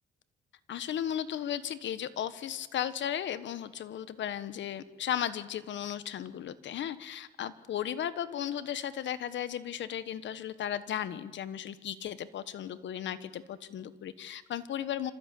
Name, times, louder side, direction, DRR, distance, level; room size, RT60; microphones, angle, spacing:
voice 1, 0.7-15.1, left 10 dB, 70° left, 14 dB, 1.2 m, -35 dB
26.0 x 14.0 x 8.4 m, 1.2 s
cardioid pair, 90°, 20 cm